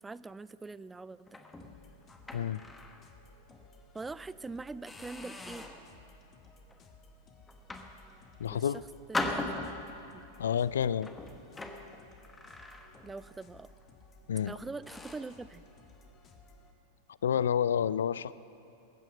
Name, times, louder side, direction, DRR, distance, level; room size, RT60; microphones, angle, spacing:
voice 1, 0.0-1.4 3.9-5.7 8.5-8.7 9.1-9.6 10.1-10.2 13.0-13.7 14.4-15.6, right 3 dB, 10° right, 17 dB, 0.4 m, -43 dB
sound 1, 1.3-3.1 3.5-3.7 4.2-4.4 4.9-5.9 6.5-6.8 7.5-8.5 9.1-10.1 10.9-13.3 13.5-13.8 14.4-14.5 14.9-15.4, left 2 dB, 10° left, 1.3 m, -40 dB
sound 2, 1.6-16.7, left 2 dB, 30° left, 1.5 m, -58 dB
voice 2, 8.4-8.8 10.4-11.1 14.3-14.5 17.2-18.3, left 8 dB, 70° left, 18 dB, 0.3 m, -29 dB
21.5 x 9.1 x 6.4 m, 2.8 s
figure-of-eight pair, 95°, 0 cm